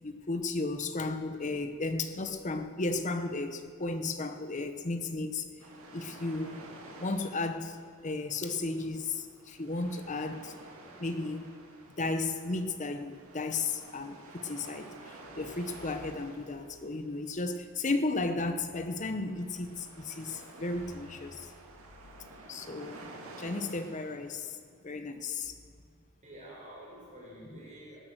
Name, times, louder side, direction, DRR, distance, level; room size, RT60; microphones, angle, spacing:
voice 1, 0.0-5.4 5.9-6.6 7.0-10.5 11.0-11.5 12.0-21.5 22.5-24.6 24.8-25.5, left 3 dB, 35° left, 8 dB, 0.9 m, -34 dB
sound 1, 5.6-24.5, right 2 dB, 80° right, 2.4 m, -51 dB
voice 2, 26.2-28.0, right 1 dB, 35° right, -4 dB, 4.8 m, -48 dB
18.5 x 10.5 x 6.4 m, 2.2 s
head